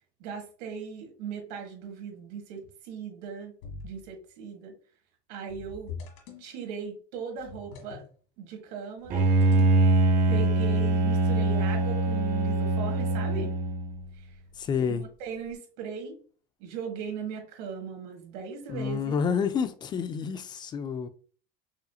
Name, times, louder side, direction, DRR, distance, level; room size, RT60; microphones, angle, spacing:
voice 1, 0.2-3.5 3.8-4.7 5.3-5.9 6.4-8.0 8.4-9.2 10.3-13.5 14.9-16.2 16.6-19.1, right 6 dB, 80° right, 1.6 m, -38 dB
sound 1, 3.6-4.1 5.5-6.5 7.4-8.1 9.0-9.9, left 5 dB, 90° left, 1.8 m, -43 dB
Bowed string instrument, 9.1-14.0, right 2 dB, 40° right, 1.0 m, -23 dB
voice 2, 14.5-15.1 18.7-21.1, left 6 dB, 20° left, 0.4 m, -29 dB
5.7 x 2.7 x 2.3 m
cardioid pair, 150°, 20 cm